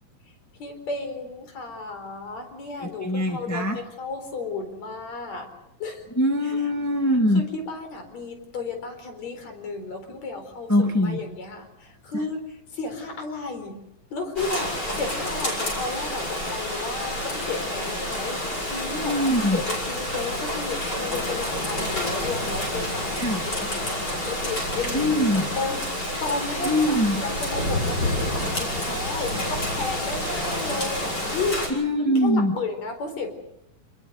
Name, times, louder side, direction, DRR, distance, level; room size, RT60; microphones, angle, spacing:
voice 1, 0.6-5.5 5.8-6.0 7.4-10.7 11.0-12.4 12.7-13.8 14.1-14.7 15.0-18.4 18.7-25.1 25.6-25.9 26.2-31.6 32.2-33.3, left 3 dB, 50° left, 6 dB, 5.3 m, -33 dB
voice 2, 2.8-3.8 6.1-7.5 10.7-11.3 12.1-12.3 19.0-19.6 23.2-23.5 24.9-25.5 26.6-27.2 31.7-32.6, equal, 10° left, 2 dB, 0.8 m, -23 dB
Rain, 14.4-31.7, left 1 dB, 25° left, 7.5 m, -28 dB
28.0 x 21.5 x 6.6 m, 0.81 s
omnidirectional pair, 4.1 m